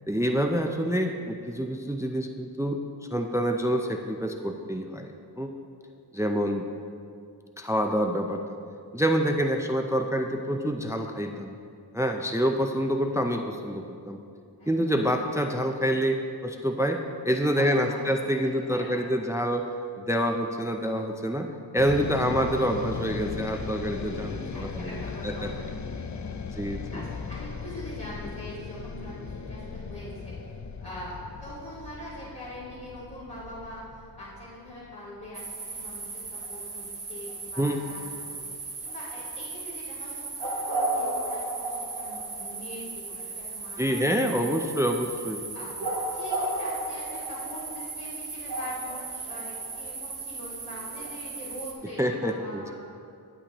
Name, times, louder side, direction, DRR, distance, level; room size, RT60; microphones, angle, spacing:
voice 1, 0.1-2.8 3.1-5.5 6.1-6.7 7.6-8.6 8.9-11.6 11.9-14.2 14.7-19.7 20.0-24.9 25.2-25.5 26.6-27.0 37.6-37.8 43.8-45.4 52.0-52.7, equal, 5° right, 4 dB, 0.5 m, -27 dB
voice 2, 14.6-14.9 17.5-19.0 24.0-25.7 26.7-31.1 31.4-36.2 36.5-38.3 38.8-40.2 40.6-44.6 45.5-45.8 46.1-52.7, equal, 60° left, -11 dB, 2.3 m, -43 dB
sound 1, 21.8-36.0, left 5 dB, 45° left, 0.5 m, -38 dB
sound 2, 35.3-51.7, right 2 dB, 60° right, 1.1 m, -35 dB
11.5 x 8.3 x 3.0 m, 2.4 s
wide cardioid pair, 50°, 42 cm